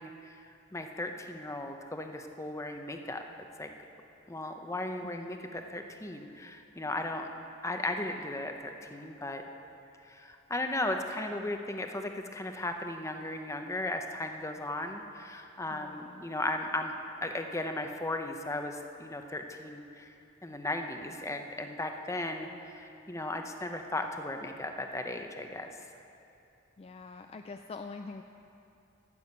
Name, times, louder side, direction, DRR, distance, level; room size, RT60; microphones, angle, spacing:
voice 1, 0.0-3.2 3.6-3.7 4.3-7.3 7.6-9.4 10.0-16.9 17.2-20.1 20.4-25.7, left 2 dB, 15° left, 5 dB, 0.7 m, -36 dB
voice 2, 5.0-5.5 15.7-16.2 26.8-28.2, left 4 dB, 30° left, 6 dB, 0.3 m, -45 dB
13.5 x 7.1 x 8.3 m, 2.8 s
head